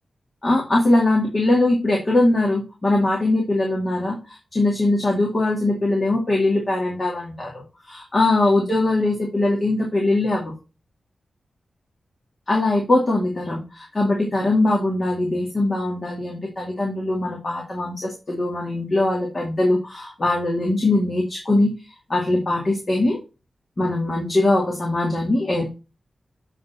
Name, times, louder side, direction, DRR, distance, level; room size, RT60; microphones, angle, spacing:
voice 1, 0.4-10.5 12.5-21.7 22.1-23.2 23.8-25.7, left 2 dB, 35° left, -1 dB, 2.2 m, -21 dB
8.5 x 3.9 x 4.1 m, 0.29 s
wide cardioid pair, 95°, 0 cm